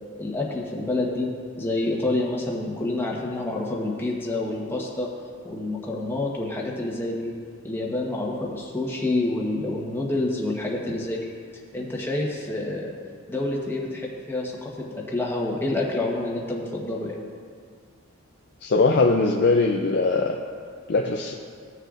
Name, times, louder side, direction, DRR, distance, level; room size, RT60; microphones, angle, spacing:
voice 1, 0.1-1.3 1.6-5.1 5.4-7.3 7.6-11.3 11.7-12.9 13.3-17.2, left 2 dB, 10° left, -3 dB, 1.0 m, -28 dB
voice 2, 18.6-20.4 20.9-21.3, left 3 dB, 50° left, 1 dB, 0.5 m, -21 dB
16.0 x 6.5 x 2.5 m, 2.1 s
head